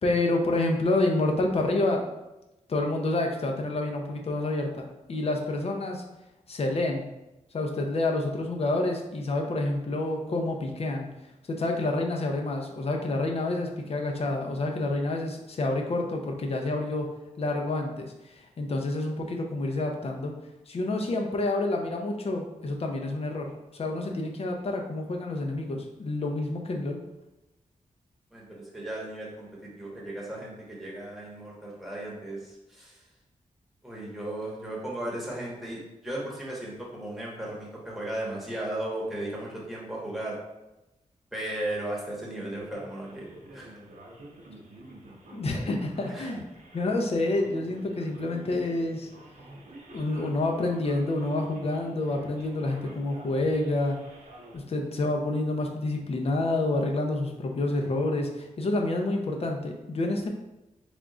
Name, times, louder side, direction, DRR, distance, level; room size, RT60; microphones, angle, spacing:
voice 1, 0.0-2.1 2.7-6.0 6.5-7.1 7.5-11.1 11.5-17.1 17.4-20.3 20.7-23.5 23.8-27.0 45.3-46.5 46.7-49.1 49.9-54.0 54.5-60.3, left 2 dB, 50° left, 2 dB, 0.6 m, -28 dB
voice 2, 28.3-29.5 29.8-32.9 33.8-40.4 41.3-43.3 43.5-43.7 46.1-46.3, right 1 dB, ahead, -5 dB, 1.2 m, -36 dB
Male speech man speaking, 42.6-54.6, right 1 dB, 75° right, 0.8 m, -48 dB
3.5 x 2.4 x 3.7 m, 0.97 s
wide cardioid pair, 100°, 13 cm